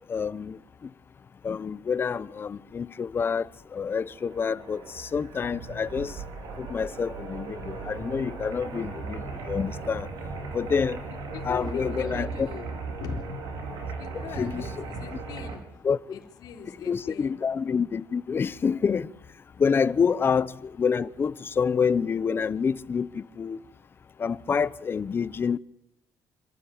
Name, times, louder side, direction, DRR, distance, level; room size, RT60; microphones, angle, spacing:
voice 1, 0.1-0.6 1.4-3.4 3.7-6.1 6.6-9.2 9.5-10.1 10.5-11.0 11.4-12.5 14.1-14.8 15.8-16.0 16.8-19.1 19.6-20.5 20.8-23.6 24.2-25.6, left 6 dB, 30° left, 0.8 m, -27 dB
sound 1, 4.0-15.6, right 4 dB, 80° right, 5.0 m, -37 dB
voice 2, 11.3-12.7 13.0-13.3 14.0-15.7 16.1-17.4 20.1-20.2, left 7 dB, 70° left, 4.1 m, -40 dB
27.0 x 14.0 x 8.8 m
cardioid pair, 125°, 7 cm